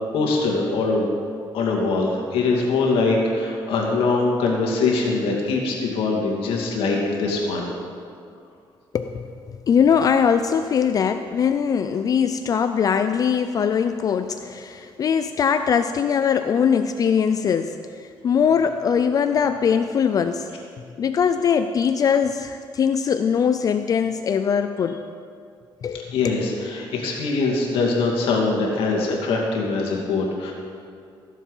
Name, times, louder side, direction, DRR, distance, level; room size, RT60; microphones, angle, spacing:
voice 1, 0.1-1.1 1.5-7.7 26.1-30.5, left 3 dB, 90° left, -1 dB, 2.4 m, -22 dB
voice 2, 8.9-9.3 9.7-20.5 21.0-25.0 25.8-26.1, left 7 dB, 40° left, 8 dB, 0.4 m, -21 dB
16.5 x 7.4 x 5.5 m, 2.3 s
cardioid pair, 135°, 9 cm